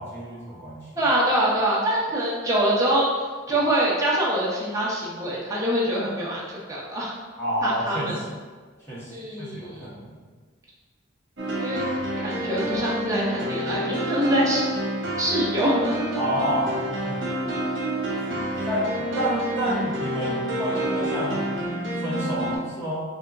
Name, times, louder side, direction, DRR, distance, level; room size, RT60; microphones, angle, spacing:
voice 1, 0.0-0.9 7.4-8.2 8.9-9.1 9.4-10.1 16.2-17.2 18.1-21.5 22.0-23.0, equal, 10° left, -10 dB, 1.1 m, -29 dB
voice 2, 1.0-3.1 3.5-6.4 6.7-7.2 7.6-8.2 9.1-9.9 11.6-11.8 12.2-14.6 15.2-16.0, right 1 dB, 15° right, -6 dB, 0.7 m, -24 dB
sound 1, 11.4-22.6, right 1 dB, 75° right, 0.8 m, -28 dB
3.5 x 2.3 x 3.8 m, 1.4 s
head